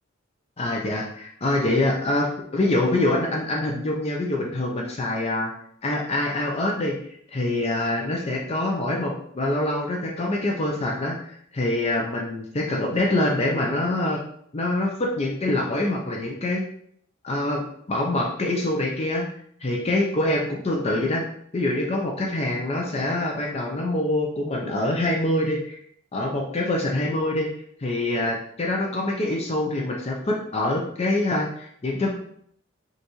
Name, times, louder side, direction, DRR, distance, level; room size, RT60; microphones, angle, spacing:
voice 1, 0.6-5.5 5.8-7.0 7.3-14.2 14.5-16.6 17.2-19.3 19.6-21.2 21.5-25.8 26.1-27.5 27.8-32.1, left 1 dB, 30° left, -1 dB, 0.5 m, -25 dB
5.4 x 2.5 x 3.0 m, 0.66 s
head